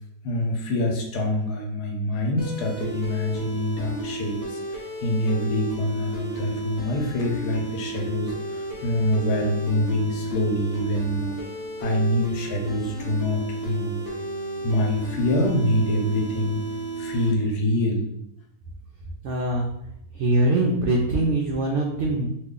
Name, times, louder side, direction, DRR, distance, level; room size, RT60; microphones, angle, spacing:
voice 1, 0.2-11.4 11.8-14.0 14.6-16.6 17.0-18.0, left 1 dB, 75° left, 0 dB, 1.2 m, -25 dB
sound 1, 2.4-17.3, right 2 dB, 35° left, 0.7 m, -33 dB
voice 2, 19.2-19.7 20.1-22.3, right 2 dB, 85° right, 0 dB, 0.6 m, -22 dB
3.0 x 2.4 x 3.6 m, 0.76 s
omnidirectional pair, 1.8 m